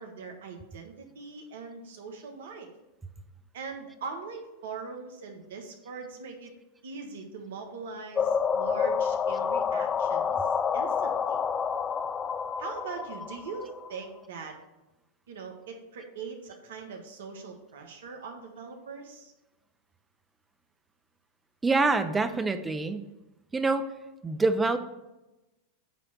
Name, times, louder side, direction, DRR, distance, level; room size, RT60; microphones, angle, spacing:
voice 1, 0.0-2.7 3.5-6.5 6.8-10.4 10.7-11.4 12.6-14.6 15.3-19.3, right 4 dB, 70° right, 4 dB, 1.3 m, -41 dB
sound 1, 8.2-13.9, left 6 dB, 25° left, 0.3 m, -28 dB
voice 2, 21.6-23.1 23.5-23.9 24.2-24.8, right 3 dB, 15° right, 10 dB, 0.7 m, -25 dB
8.9 x 3.2 x 6.0 m, 1.0 s
hypercardioid pair, 100°, 0 cm